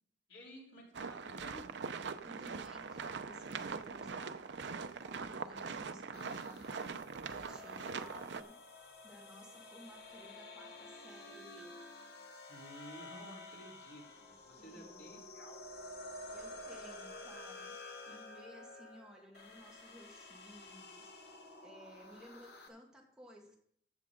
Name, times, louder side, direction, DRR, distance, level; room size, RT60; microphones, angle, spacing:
voice 1, 0.3-1.8 12.5-15.7, equal, 80° left, -3 dB, 3.8 m, -53 dB
sound 1, 0.9-8.4, right 5 dB, 70° right, 0.6 m, -42 dB
voice 2, 2.2-8.6 9.0-11.8 14.6-15.2 16.3-23.6, equal, 5° right, -2 dB, 1.8 m, -57 dB
sound 2, 6.1-22.7, left 2 dB, 60° left, 1.3 m, -51 dB
15.0 x 7.2 x 3.8 m, 0.66 s
head